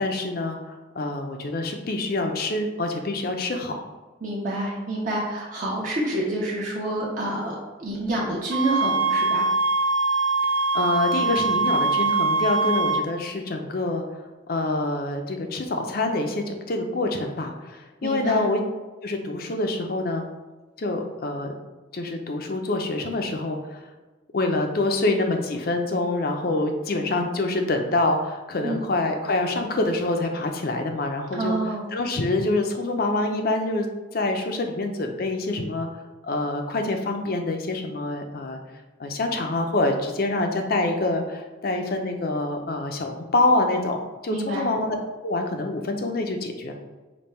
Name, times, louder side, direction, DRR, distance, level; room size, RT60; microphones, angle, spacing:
voice 1, 0.0-3.9 10.7-18.6 19.0-20.3 20.8-21.5 21.9-23.8 24.3-31.6 31.9-33.9 34.1-35.9 36.2-38.6 39.0-44.0 44.2-45.0 45.2-46.7, left 2 dB, 55° left, 4 dB, 0.6 m, -26 dB
voice 2, 4.2-9.5 18.0-18.5 28.6-28.8 31.3-31.8 44.3-44.7, right 1 dB, 45° right, -5 dB, 0.8 m, -28 dB
sound 1, 8.5-13.1, right 3 dB, 85° right, 0.4 m, -23 dB
5.2 x 2.3 x 4.3 m, 1.2 s
head